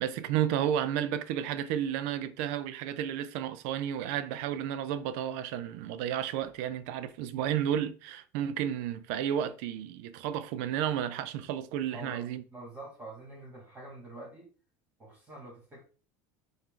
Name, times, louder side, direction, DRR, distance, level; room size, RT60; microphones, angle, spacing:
voice 1, 0.0-12.4, right 10 dB, 75° right, 0.5 m, -32 dB
voice 2, 11.9-12.2 12.5-14.5 15.0-15.8, right 1 dB, 25° right, 2.2 m, -46 dB
4.4 x 2.6 x 3.7 m
supercardioid pair, 125°, 8 cm